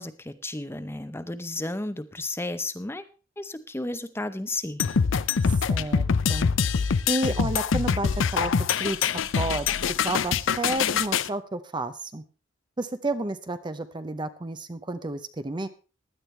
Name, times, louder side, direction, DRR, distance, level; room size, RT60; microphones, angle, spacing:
voice 1, 0.0-3.1 3.4-4.8, left 2 dB, 10° left, 11 dB, 0.7 m, -33 dB
sound 1, 4.8-11.3, left 6 dB, 70° left, 0.5 m, -24 dB
voice 2, 5.4-6.5 7.1-12.2 12.8-15.7, right 2 dB, 25° right, 10 dB, 0.6 m, -31 dB
16.5 x 11.0 x 3.3 m, 0.33 s
head